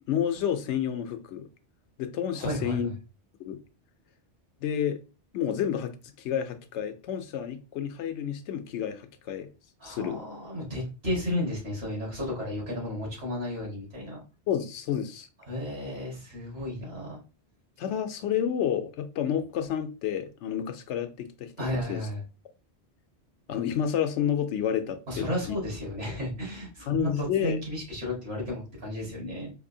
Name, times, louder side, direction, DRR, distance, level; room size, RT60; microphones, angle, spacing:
voice 1, 0.1-1.4 2.0-2.9 3.4-3.6 4.6-5.0 5.3-9.5 9.8-10.2 14.5-15.3 17.8-21.5 21.9-22.0 23.5-25.6 26.9-27.6, left 9 dB, 90° left, 0.9 m, -30 dB
voice 2, 2.4-2.9 9.8-14.2 15.4-17.2 21.6-22.2 25.1-29.5, left 1 dB, 65° right, 2.1 m, -33 dB
4.3 x 2.6 x 2.7 m
omnidirectional pair, 1.1 m